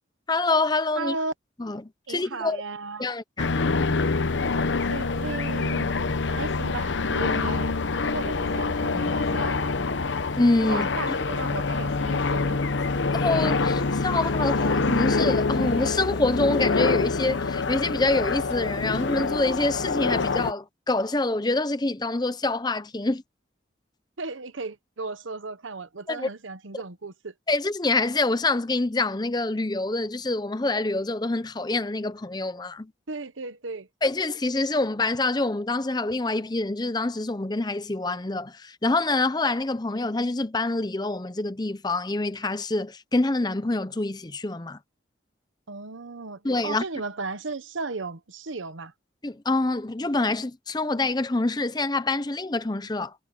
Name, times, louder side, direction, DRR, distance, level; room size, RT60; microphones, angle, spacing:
voice 1, 0.3-1.2 1.6-2.6 3.0-3.7 10.4-11.2 13.2-23.2 26.1-26.3 27.5-32.9 34.0-44.8 46.4-46.8 49.2-53.1, left 2 dB, 20° left, 0.7 m, -26 dB
voice 2, 1.0-1.3 2.1-3.1 4.9-5.9 6.3-7.8 8.1-9.6 10.7-12.7 24.2-27.3 33.1-33.9 45.7-48.9, right 3 dB, 90° right, 1.1 m, -35 dB
sound 1, 3.4-20.5, left 3 dB, 70° left, 0.9 m, -25 dB
head